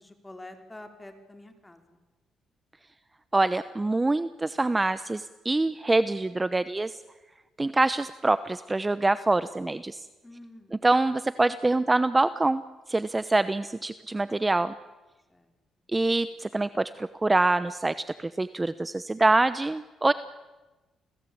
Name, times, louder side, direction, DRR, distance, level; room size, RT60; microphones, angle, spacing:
voice 1, 0.0-1.8 10.2-10.8 15.3-15.5, left 1 dB, 15° left, 6 dB, 4.3 m, -47 dB
voice 2, 3.3-7.0 7.6-10.0 10.8-12.6 12.9-14.7 15.9-20.1, right 2 dB, 20° right, 14 dB, 0.9 m, -25 dB
29.5 x 20.5 x 8.7 m, 1.1 s
cardioid pair, 90°, 0 cm